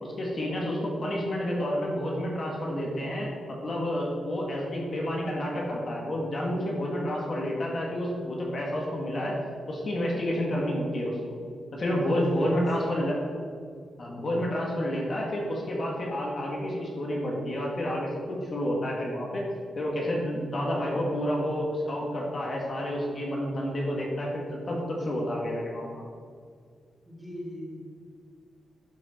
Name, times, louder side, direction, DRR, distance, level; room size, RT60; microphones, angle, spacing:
voice 1, 0.0-11.4 11.7-13.2 14.0-26.0, equal, 40° left, -2 dB, 1.9 m, -30 dB
voice 2, 12.2-13.3 27.0-27.8, equal, 10° right, -10 dB, 2.6 m, -40 dB
12.0 x 6.5 x 4.4 m, 2.1 s
wide cardioid pair, 150°, 0 cm